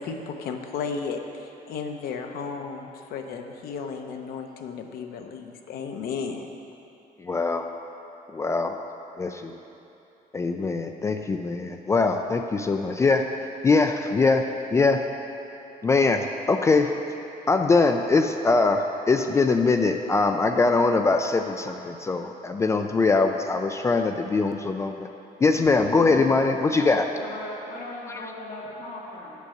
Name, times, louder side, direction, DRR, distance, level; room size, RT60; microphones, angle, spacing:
voice 1, 0.0-6.5, left 5 dB, 75° left, 4 dB, 0.9 m, -34 dB
voice 2, 7.2-7.7 8.3-8.8 9.2-9.5 10.3-14.5 14.7-15.0 15.8-16.9 17.5-25.1 25.4-27.0 28.1-28.2, left 3 dB, 20° left, 6 dB, 0.3 m, -22 dB
voice 3, 25.6-26.2 26.8-26.9 27.2-29.3, left 2 dB, 55° left, -5 dB, 1.9 m, -37 dB
9.0 x 8.2 x 6.5 m, 2.9 s
cardioid pair, 175°, 15 cm